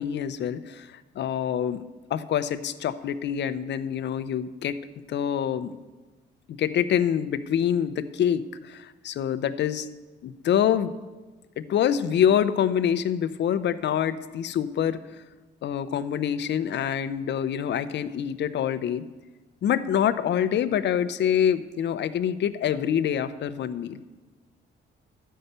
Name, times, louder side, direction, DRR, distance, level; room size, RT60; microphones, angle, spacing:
voice 1, 0.0-1.8 2.1-4.8 5.1-5.7 6.5-9.9 10.2-10.9 11.6-15.0 15.6-19.0 19.6-24.0, left 9 dB, 65° left, 12 dB, 0.7 m, -26 dB
12.5 x 5.6 x 8.0 m, 1.2 s
cardioid pair, 90°, 20 cm